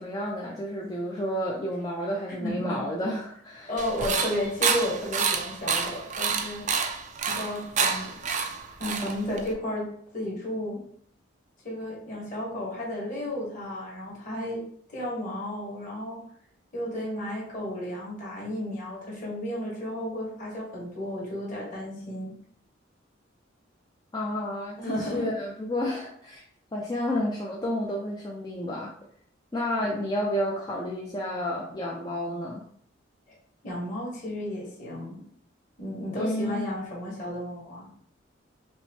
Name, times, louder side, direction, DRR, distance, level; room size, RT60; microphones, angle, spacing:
voice 1, 0.0-3.7 24.1-26.4 26.7-28.9 29.5-32.6 36.1-36.7, left 1 dB, 20° left, -3 dB, 0.4 m, -30 dB
voice 2, 2.3-2.8 3.7-6.6 7.3-8.1 8.8-9.9 10.1-10.8 11.6-14.6 14.9-16.2 16.7-22.3 24.8-25.3 29.8-30.0 33.6-35.2 35.8-37.9, left 1 dB, 40° left, -5 dB, 1.6 m, -33 dB
sound 1, 3.8-9.5, right 6 dB, 40° right, 0.4 m, -28 dB
5.3 x 2.1 x 3.1 m, 0.62 s
head